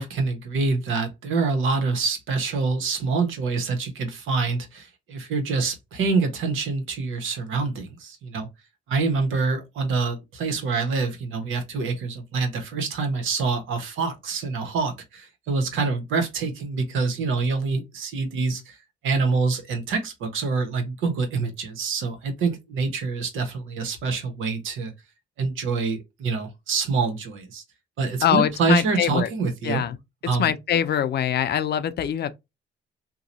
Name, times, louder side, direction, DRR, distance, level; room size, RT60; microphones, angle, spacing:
voice 1, 0.0-8.5 8.9-18.8 19.0-24.9 25.4-27.6 28.0-29.8 30.3-30.5, right 4 dB, 85° right, 1.1 m, -26 dB
voice 2, 28.2-29.3 29.6-30.0 30.4-32.3, left 9 dB, 55° left, 0.5 m, -23 dB
2.8 x 2.3 x 4.0 m
cardioid pair, 90°, 20 cm